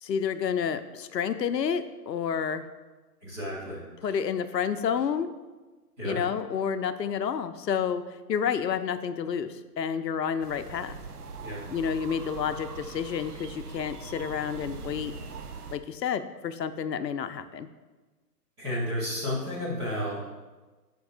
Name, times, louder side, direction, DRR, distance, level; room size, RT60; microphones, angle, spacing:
voice 1, 0.0-2.7 4.0-5.3 6.0-11.0 11.7-15.1 15.7-17.7, left 7 dB, 80° left, 11 dB, 0.7 m, -30 dB
voice 2, 3.2-3.8 6.0-6.2 11.4-11.6 18.6-20.2, left 1 dB, 5° right, -9 dB, 0.7 m, -32 dB
sound 1, 10.4-15.8, right 4 dB, 65° right, 1.0 m, -41 dB
13.0 x 5.3 x 2.5 m, 1.2 s
hypercardioid pair, 155°, 49 cm